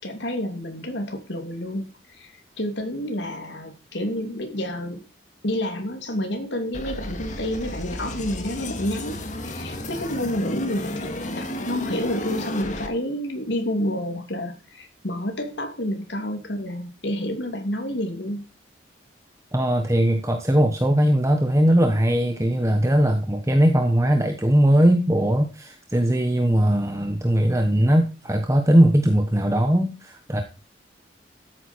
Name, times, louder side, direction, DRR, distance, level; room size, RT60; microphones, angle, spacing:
voice 1, 0.0-5.0 5.4-18.4, left 1 dB, 70° left, 5 dB, 3.0 m, -29 dB
sound 1, 6.7-12.9, left 1 dB, 40° left, 2.0 m, -33 dB
voice 2, 19.5-30.4, right 1 dB, 15° right, 5 dB, 1.1 m, -20 dB
13.5 x 9.0 x 4.6 m, 0.32 s
head